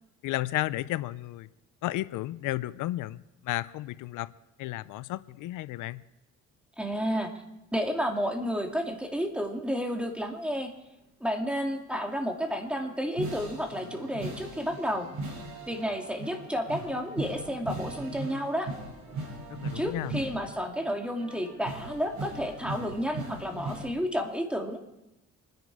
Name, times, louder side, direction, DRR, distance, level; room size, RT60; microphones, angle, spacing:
voice 1, 0.2-1.5 1.8-4.3 4.6-6.0 19.5-20.1, left 16 dB, 90° left, 16 dB, 0.5 m, -33 dB
voice 2, 6.8-7.3 7.7-10.7 11.2-15.1 15.7-18.7 19.7-24.9, equal, 5° right, 3 dB, 2.5 m, -31 dB
sound 1, 12.5-23.9, right 2 dB, 65° right, 6.4 m, -39 dB
25.5 x 10.5 x 4.9 m, 0.94 s
cardioid pair, 90°, 30 cm